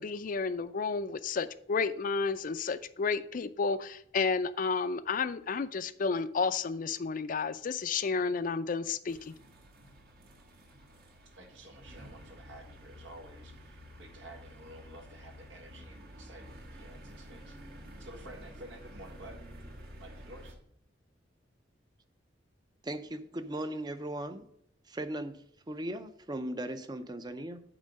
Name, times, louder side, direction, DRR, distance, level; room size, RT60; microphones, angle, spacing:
voice 1, 0.0-9.3, left 5 dB, 45° left, 13 dB, 0.4 m, -31 dB
sound 1, 9.1-20.5, equal, 55° right, 1.4 m, -50 dB
voice 2, 11.3-19.4 20.0-20.6, right 1 dB, 80° right, 3 dB, 1.5 m, -51 dB
voice 3, 22.8-24.5 24.9-27.6, right 1 dB, 20° right, 10 dB, 0.5 m, -38 dB
8.8 x 3.8 x 6.4 m, 0.69 s
head